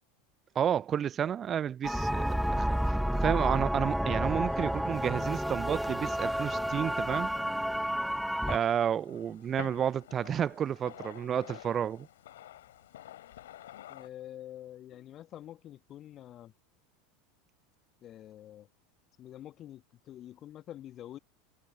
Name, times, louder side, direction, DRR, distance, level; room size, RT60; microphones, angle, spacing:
voice 1, 0.5-7.3 8.5-12.1, right 9 dB, 30° right, 0.8 m, -31 dB
sound 1, 1.8-8.6, equal, ahead, 1.0 m, -30 dB
sound 2, 4.5-14.1, left 13 dB, 65° left, 3.9 m, -50 dB
voice 2, 13.9-16.5 18.0-18.7 19.2-21.2, left 12 dB, 35° left, 1.9 m, -47 dB
figure-of-eight pair, 80°, 0 cm